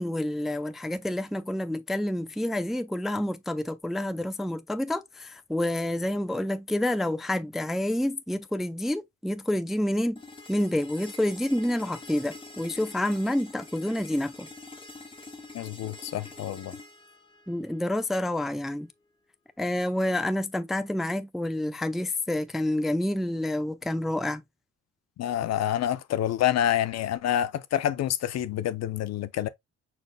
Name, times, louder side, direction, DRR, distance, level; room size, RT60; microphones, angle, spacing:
voice 1, 0.0-10.2 10.5-14.5 17.5-18.9 19.6-24.4, left 1 dB, ahead, 0.3 m, -28 dB
sound 1, 10.2-18.1, left 3 dB, 15° left, 1.0 m, -46 dB
voice 2, 15.5-16.7 25.2-29.5, left 11 dB, 60° left, 0.5 m, -27 dB
5.2 x 4.2 x 2.2 m
cardioid pair, 90°, 30 cm